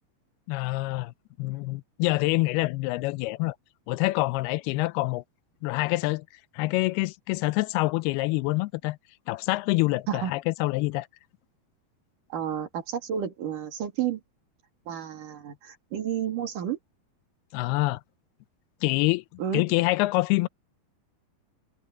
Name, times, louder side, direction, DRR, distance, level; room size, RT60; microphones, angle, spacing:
voice 1, 0.5-3.6 3.9-5.2 5.6-6.3 6.5-9.0 9.3-11.1 17.5-18.0 18.8-19.2 19.5-20.5, left 21 dB, 90° left, 2.5 m, -26 dB
voice 2, 12.3-14.2 14.9-16.8 19.4-19.6, right 9 dB, 60° right, 3.7 m, -31 dB
omnidirectional pair, 4.5 m